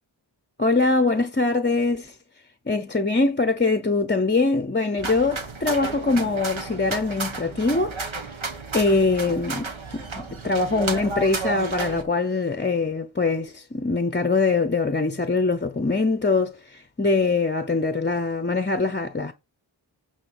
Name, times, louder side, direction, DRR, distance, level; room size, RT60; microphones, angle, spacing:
voice 1, 0.6-2.2 2.7-8.0 8.7-19.3, left 3 dB, 25° left, 0.7 m, -23 dB
sound 1, 5.0-12.0, right 4 dB, 85° right, 1.4 m, -32 dB
8.8 x 3.8 x 6.6 m
wide cardioid pair, 55°, 46 cm